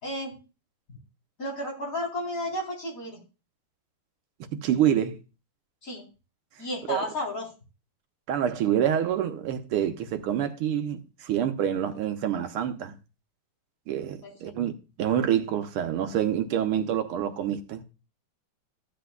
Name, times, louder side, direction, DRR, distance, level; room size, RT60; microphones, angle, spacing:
voice 1, 0.0-0.4 1.4-3.2 5.8-6.0 6.6-7.5 14.2-14.5, left 1 dB, 40° left, 4.1 m, -33 dB
voice 2, 4.5-5.2 6.9-7.1 8.3-12.9 13.9-14.7 15.0-17.8, right 10 dB, 85° right, 1.8 m, -27 dB
15.0 x 10.0 x 2.3 m
omnidirectional pair, 2.4 m